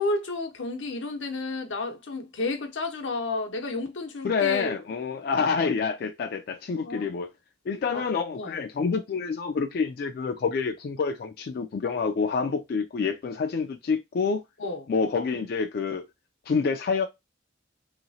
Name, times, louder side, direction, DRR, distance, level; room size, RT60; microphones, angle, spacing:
voice 1, 0.0-4.8 6.8-7.1 7.9-8.1 8.3-8.6 14.6-14.9, left 3 dB, 80° left, 0.8 m, -31 dB
voice 2, 4.2-7.3 7.7-14.4 14.9-16.1 16.5-17.1, left 5 dB, 55° left, 0.3 m, -27 dB
3.1 x 2.9 x 2.6 m
head